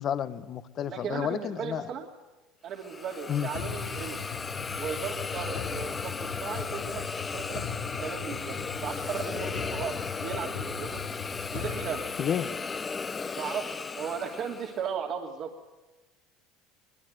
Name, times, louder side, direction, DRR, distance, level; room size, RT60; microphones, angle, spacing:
voice 1, 0.0-1.9 3.3-3.5 12.2-12.5, left 9 dB, 45° left, 13 dB, 1.3 m, -31 dB
voice 2, 0.9-2.0 2.6-4.2 4.8-7.0 7.3-11.0 11.5-12.0 13.4-15.5, right 7 dB, 55° right, 1 dB, 2.7 m, -36 dB
Hiss, 2.7-14.9, left 4 dB, 25° left, 1.1 m, -36 dB
sound 1, 3.5-12.7, left 6 dB, 85° left, 3.4 m, -39 dB
22.5 x 22.5 x 9.3 m, 1.2 s
supercardioid pair, 95°, 0 cm